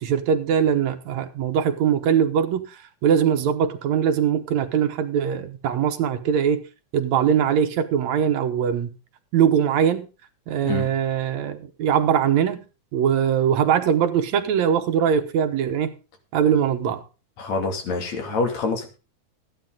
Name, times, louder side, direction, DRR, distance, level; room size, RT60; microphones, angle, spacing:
voice 1, 0.0-6.6 6.9-8.9 9.3-10.1 10.5-12.6 12.9-15.9 16.3-17.0, right 8 dB, 75° right, 2.4 m, -21 dB
voice 2, 17.4-18.9, left 4 dB, 70° left, 3.8 m, -26 dB
14.0 x 10.5 x 3.9 m
omnidirectional pair, 3.3 m